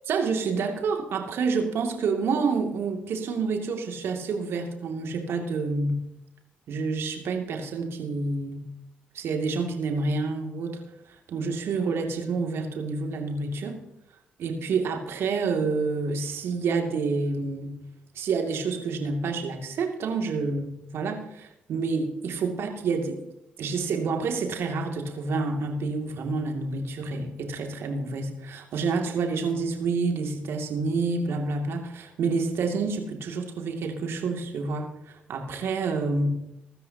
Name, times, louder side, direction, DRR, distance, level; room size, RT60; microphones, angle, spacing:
voice 1, 0.1-5.9 6.7-8.6 9.1-10.8 11.1-13.8 14.4-17.8 18.1-23.2 23.6-36.3, right 4 dB, 60° right, 3 dB, 2.5 m, -28 dB
24.0 x 13.0 x 2.9 m, 0.83 s
hypercardioid pair, 45°, 5 cm